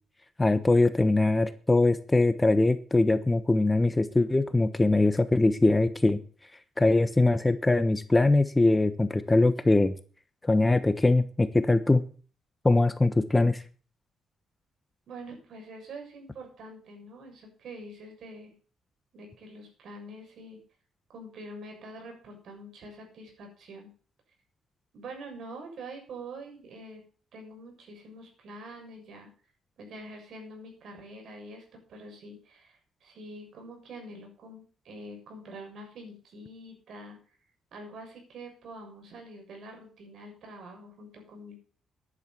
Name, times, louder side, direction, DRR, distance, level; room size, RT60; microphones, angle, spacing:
voice 1, 0.4-6.2 6.8-9.9 10.4-12.0 12.6-13.6, left 2 dB, 15° left, 12 dB, 1.1 m, -22 dB
voice 2, 15.1-18.5 19.1-20.6 21.1-23.9 24.9-27.0 27.3-29.3 29.8-37.2 37.7-41.6, right 1 dB, 65° right, 2 dB, 7.2 m, -45 dB
10.5 x 10.5 x 7.0 m, 0.41 s
cardioid pair, 90°, 0 cm